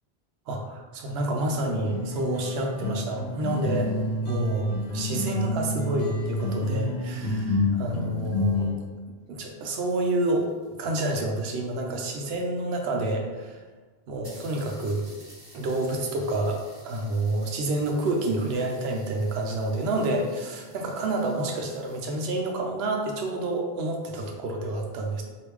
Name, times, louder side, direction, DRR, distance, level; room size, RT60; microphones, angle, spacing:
voice 1, 0.5-3.9 4.2-8.7 9.3-10.5 10.8-13.6 14.1-15.0 15.5-16.6 16.8-25.2, right 2 dB, 80° right, 2 dB, 0.8 m, -28 dB
sound 1, 1.8-8.7, left 1 dB, 90° left, 0.9 m, -29 dB
sound 2, 9.3-12.0 12.9-13.0 13.2-13.3 13.7-13.8 14.2-22.4, right 1 dB, 30° right, 0.8 m, -54 dB
3.4 x 2.6 x 3.0 m, 1.4 s
omnidirectional pair, 1.0 m